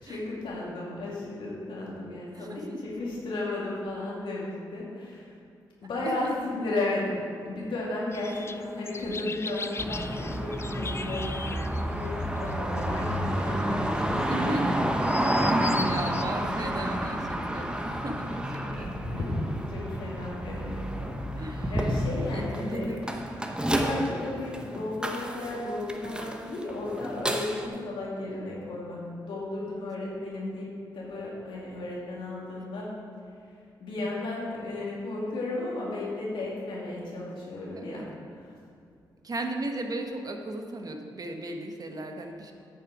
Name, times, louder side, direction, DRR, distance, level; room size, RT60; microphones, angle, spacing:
voice 1, 0.0-5.4 5.8-14.8 15.1-16.0 18.7-21.1 21.3-22.9 23.7-29.0 29.3-30.7 30.9-32.9 33.8-38.0 38.3-38.5, left 2 dB, 80° left, -5 dB, 2.5 m, -34 dB
voice 2, 2.3-2.9 6.0-6.1 11.6-11.8 14.1-14.7 15.4-19.0 21.4-21.7 22.3-23.1 37.8-38.0 39.2-42.5, right 2 dB, 50° right, 4 dB, 1.1 m, -36 dB
sound 1, 8.1-16.2, left 4 dB, 30° left, 0.4 m, -40 dB
sound 2, 9.8-27.7, right 1 dB, 10° right, 1.0 m, -30 dB
9.2 x 6.8 x 4.8 m, 2.4 s
cardioid pair, 55°, 8 cm